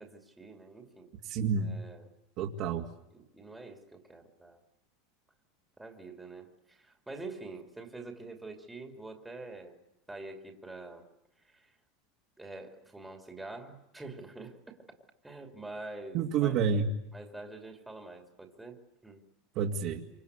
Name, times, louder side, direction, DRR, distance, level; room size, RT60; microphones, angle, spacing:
voice 1, 0.0-1.1 1.6-2.1 3.1-4.6 5.8-9.8 10.1-11.1 11.4-11.7 12.4-15.0 15.2-16.5 17.1-19.2, right 2 dB, 5° right, 4 dB, 2.7 m, -46 dB
voice 2, 1.2-1.7 2.4-2.8 16.1-16.9 19.5-20.0, right 6 dB, 45° right, 0 dB, 2.5 m, -29 dB
27.0 x 25.5 x 8.3 m, 0.92 s
supercardioid pair, 150°, 0 cm